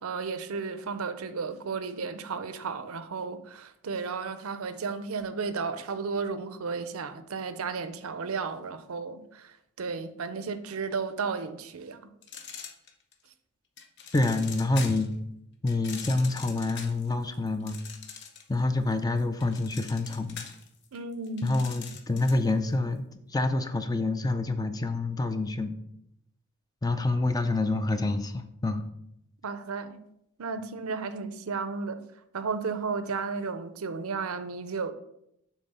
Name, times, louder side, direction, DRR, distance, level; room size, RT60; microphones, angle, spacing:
voice 1, 0.0-12.0 20.9-21.5 29.4-30.0 30.4-32.0 32.3-34.9, right 5 dB, 85° right, 0.6 m, -33 dB
sound 1, 12.2-13.3 13.8-15.1 15.7-18.6 18.9-22.5, left 6 dB, 50° left, 0.9 m, -43 dB
voice 2, 14.1-15.1 15.6-17.8 18.5-20.4 21.4-25.7 26.8-28.8, left 2 dB, 15° left, 0.4 m, -27 dB
7.2 x 3.7 x 5.5 m
head